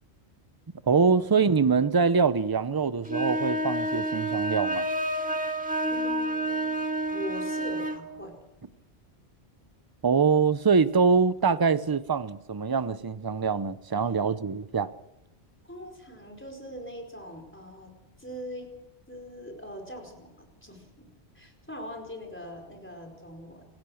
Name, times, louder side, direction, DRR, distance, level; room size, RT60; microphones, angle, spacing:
voice 1, 0.9-4.9 10.0-14.9, right 5 dB, 25° right, 0.6 m, -24 dB
sound 1, 3.0-8.0, right 1 dB, 5° right, 1.8 m, -29 dB
voice 2, 5.9-8.3 15.6-17.9 18.2-18.7 19.1-21.1 21.3-23.6, equal, 10° left, 4.7 m, -42 dB
27.0 x 16.5 x 6.4 m
omnidirectional pair, 1.1 m